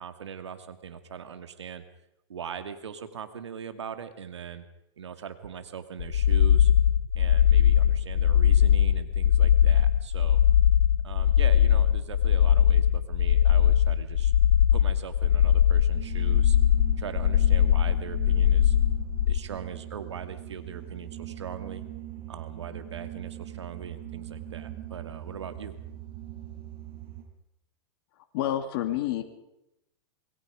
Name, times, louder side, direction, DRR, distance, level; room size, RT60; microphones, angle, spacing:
voice 1, 0.0-1.8 2.3-4.6 5.0-6.7 7.1-10.4 11.0-14.3 14.7-16.6 17.0-18.8 19.3-21.8 22.3-25.8, right 7 dB, 85° right, 9 dB, 2.5 m, -40 dB
sound 1, 6.0-19.4, left 10 dB, 75° left, 0.7 m, -21 dB
sound 2, 15.9-27.2, right 13 dB, 40° right, 6.0 m, -41 dB
voice 2, 28.3-29.2, left 12 dB, 55° left, 6 dB, 2.6 m, -28 dB
27.5 x 21.5 x 5.1 m, 0.86 s
hypercardioid pair, 115°, 14 cm